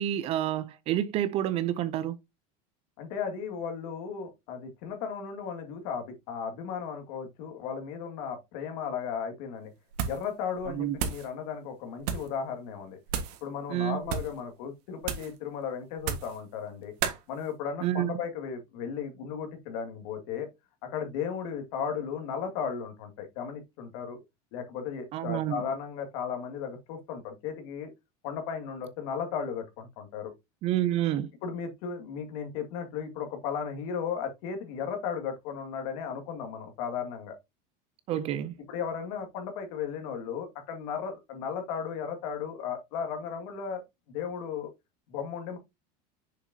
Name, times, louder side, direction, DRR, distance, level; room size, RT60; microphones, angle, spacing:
voice 1, 0.0-2.2 10.7-11.0 13.7-14.0 17.8-18.2 25.1-25.6 30.6-31.3 38.1-38.6, right 12 dB, 30° right, 0.4 m, -29 dB
voice 2, 3.0-9.7 10.1-13.0 13.4-16.9 17.3-20.5 20.8-24.2 24.5-27.9 28.2-30.3 31.4-37.4 38.7-43.8 44.1-44.7 45.1-45.6, left 7 dB, 60° left, 2.2 m, -35 dB
sound 1, 9.9-10.3 10.6-11.3 12.0-12.3 13.1-13.4 14.0-14.4 15.0-15.4 16.0-16.4 17.0-17.2, right 8 dB, 75° right, 1.6 m, -33 dB
6.7 x 6.1 x 2.8 m
supercardioid pair, 170°, 20 cm